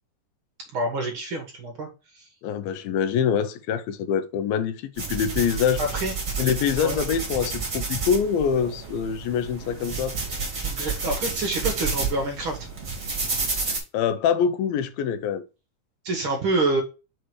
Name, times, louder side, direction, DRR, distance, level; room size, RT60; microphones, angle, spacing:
voice 1, 0.7-1.9 2.1-2.2 5.9-6.1 6.8-7.0 10.6-12.6 16.0-16.8, right 2 dB, 55° right, 1.6 m, -27 dB
voice 2, 2.4-5.8 6.4-10.1 13.9-15.4, left 7 dB, 80° left, 2.5 m, -25 dB
sound 1, 5.0-13.8, right 4 dB, 25° right, 1.9 m, -30 dB
6.2 x 3.9 x 4.6 m
omnidirectional pair, 4.2 m